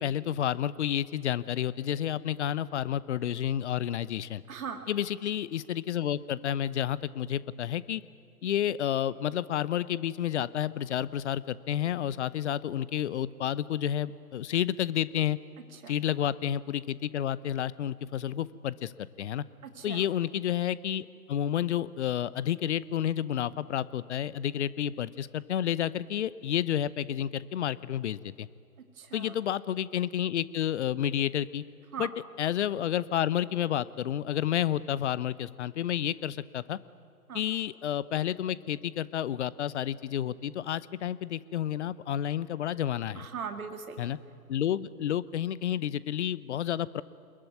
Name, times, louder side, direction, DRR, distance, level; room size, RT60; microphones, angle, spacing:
voice 1, 0.0-4.4 4.9-8.0 8.4-15.4 15.9-18.9 19.2-19.4 19.8-28.5 29.1-31.6 32.0-32.1 32.4-36.8 37.3-43.2 44.0-44.2 44.5-47.0, left 10 dB, 45° left, 19 dB, 0.9 m, -30 dB
voice 2, 4.5-4.8 15.7-15.9 19.6-20.0 28.9-29.4 31.9-32.1 37.3-37.4 43.1-44.1, right 7 dB, 60° right, 6 dB, 2.4 m, -39 dB
26.5 x 21.5 x 9.5 m, 2.3 s
figure-of-eight pair, 125°, 47 cm